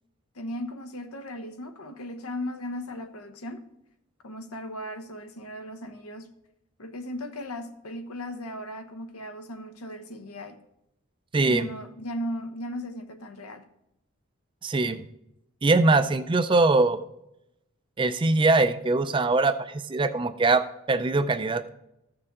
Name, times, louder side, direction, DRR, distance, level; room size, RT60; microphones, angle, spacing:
voice 1, 0.3-3.6 4.2-6.3 6.8-10.6 11.4-13.7, equal, 85° left, 7 dB, 1.1 m, -37 dB
voice 2, 11.3-11.7 14.6-15.0 15.6-17.0 18.0-21.6, right 3 dB, 20° right, 11 dB, 0.4 m, -22 dB
14.5 x 6.7 x 3.7 m, 0.84 s
head